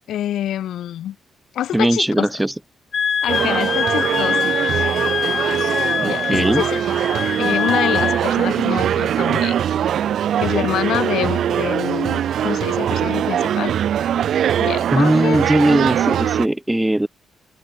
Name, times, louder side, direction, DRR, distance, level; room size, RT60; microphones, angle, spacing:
voice 1, 0.1-1.2 1.5-2.3 3.2-4.4 6.0-6.8 7.4-9.6 10.4-13.8 14.6-15.4, left 11 dB, 75° left, 2.6 m, -26 dB
voice 2, 1.7-2.5 6.0-6.6 14.9-17.1, right 1 dB, 5° right, 5.8 m, -19 dB
Wind instrument woodwind instrument, 2.9-8.2, left 7 dB, 40° left, 4.0 m, -23 dB
sound 1, 3.3-16.5, right 10 dB, 60° right, 4.8 m, -21 dB
open air
cardioid pair, 170°, 0 cm